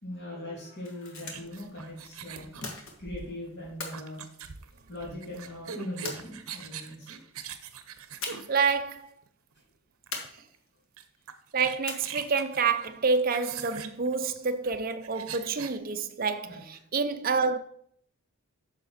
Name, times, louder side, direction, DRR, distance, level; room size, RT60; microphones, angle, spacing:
voice 1, 0.0-2.5 3.0-4.2 4.9-7.2 16.4-16.6, left 1 dB, 50° left, 2.8 m, -40 dB
sound 1, 0.8-1.6 2.6-3.3 3.8-5.1 6.0-6.8 8.2-8.7 8.9-9.1 10.1-10.8 11.9-12.4, left 3 dB, 65° left, 1.6 m, -40 dB
sound 2, 1.2-9.3 10.1-10.3 10.5-10.6 11.0-15.8, right 7 dB, 75° right, 0.8 m, -43 dB
voice 2, 8.5-9.1 11.5-17.6, right 5 dB, 40° right, 0.5 m, -28 dB
8.7 x 6.5 x 4.2 m
head